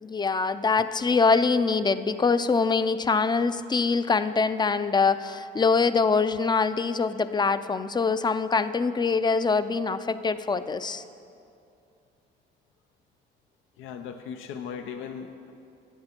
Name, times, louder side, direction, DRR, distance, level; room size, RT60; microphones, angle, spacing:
voice 1, 0.0-11.0, left 4 dB, 20° left, 12 dB, 0.4 m, -24 dB
voice 2, 13.8-15.5, left 7 dB, 90° left, 6 dB, 0.6 m, -38 dB
12.0 x 9.7 x 4.4 m, 2.6 s
cardioid pair, 90°, 20 cm